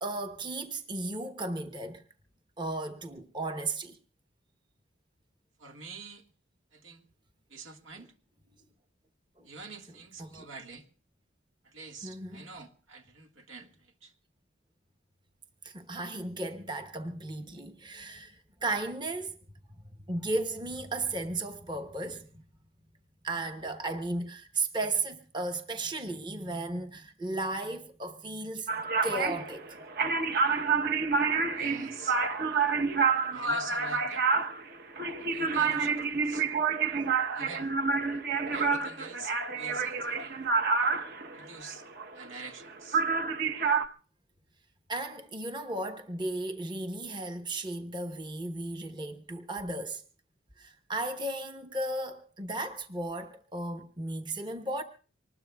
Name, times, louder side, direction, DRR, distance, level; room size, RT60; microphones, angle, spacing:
voice 1, 0.0-2.0 2.6-4.0 9.4-9.5 10.2-10.4 12.0-12.5 15.6-19.4 19.8-22.4 23.2-28.7 29.0-29.8 44.9-50.0 50.6-54.8, right 2 dB, 25° right, 0.9 m, -35 dB
voice 2, 5.6-6.2 6.7-7.0 7.5-8.1 9.4-10.9 11.6-14.1 31.5-32.2 33.3-34.3 35.2-36.5 37.3-37.7 38.5-40.4 41.3-41.9 42.1-43.0, right 4 dB, 85° right, 1.7 m, -46 dB
sound 1, 28.7-42.7 42.9-43.9, right 4 dB, 50° right, 0.9 m, -28 dB
25.0 x 20.0 x 2.3 m
head